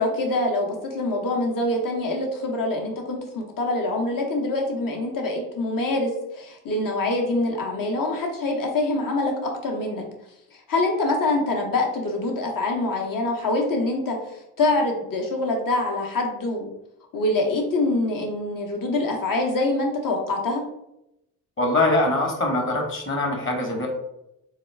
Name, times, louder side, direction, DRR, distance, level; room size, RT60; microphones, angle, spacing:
voice 1, 0.0-10.0 10.7-16.7 17.1-20.6, left 2 dB, 40° left, 1 dB, 1.2 m, -25 dB
voice 2, 21.6-23.9, left 2 dB, 25° left, 1 dB, 1.4 m, -23 dB
4.1 x 2.3 x 3.3 m, 0.84 s
hypercardioid pair, 55°, 49 cm